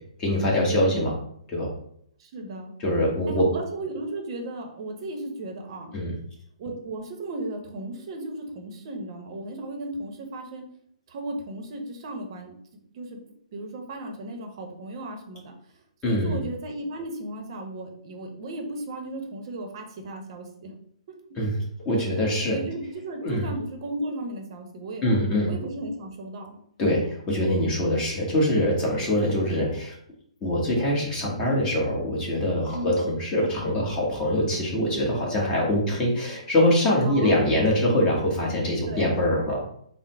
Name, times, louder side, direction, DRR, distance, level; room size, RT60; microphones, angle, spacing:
voice 1, 0.2-1.1 1.5-1.7 2.8-3.5 5.9-6.1 16.0-16.4 21.3-21.6 21.8-22.6 23.2-23.5 25.0-25.5 26.8-30.0 30.4-39.6, left 1 dB, 20° left, -3 dB, 1.1 m, -24 dB
voice 2, 2.2-2.7 3.3-5.9 6.6-10.6 11.1-12.5 12.9-13.2 13.5-15.5 16.0-20.7 22.5-25.0 25.5-26.5 32.7-32.9 37.0-37.4 38.8-39.1, right 1 dB, 45° right, 3 dB, 0.7 m, -35 dB
3.8 x 2.0 x 4.3 m, 0.67 s
hypercardioid pair, 145°, 4 cm